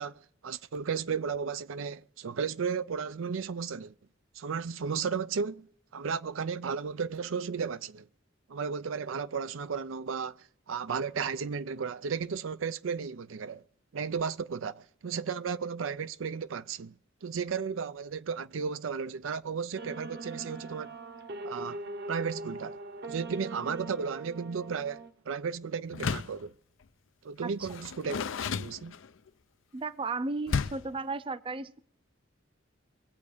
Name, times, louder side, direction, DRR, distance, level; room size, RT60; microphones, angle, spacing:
voice 1, 0.0-3.9 4.3-5.7 5.9-8.1 8.5-13.6 13.9-16.9 17.2-21.0 21.4-21.8 22.1-22.8 23.1-26.5 27.2-28.9, right 6 dB, 80° right, 0.5 m, -34 dB
sound 1, 19.8-25.1, right 2 dB, 60° right, 1.1 m, -41 dB
Door, 25.9-26.4 27.6-29.3 30.5-31.0, left 5 dB, 75° left, 0.5 m, -33 dB
voice 2, 29.7-31.8, right 3 dB, 25° right, 0.5 m, -35 dB
23.5 x 8.3 x 5.0 m
head